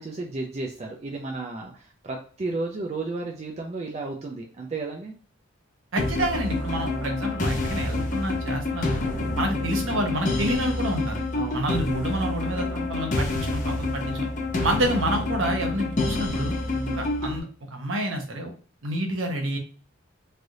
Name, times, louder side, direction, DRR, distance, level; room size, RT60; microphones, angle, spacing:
voice 1, 0.0-5.1 6.7-7.1 11.3-11.6 16.7-17.1, right 3 dB, 30° right, 0 dB, 0.3 m, -33 dB
voice 2, 5.9-9.0 9.3-11.2 11.5-14.3 14.6-16.5 16.9-18.5 18.8-19.6, right 1 dB, 65° right, 3 dB, 0.8 m, -28 dB
sound 1, 6.0-17.4, left 2 dB, 35° left, 0.5 m, -28 dB
3.3 x 2.4 x 2.6 m, 0.41 s
head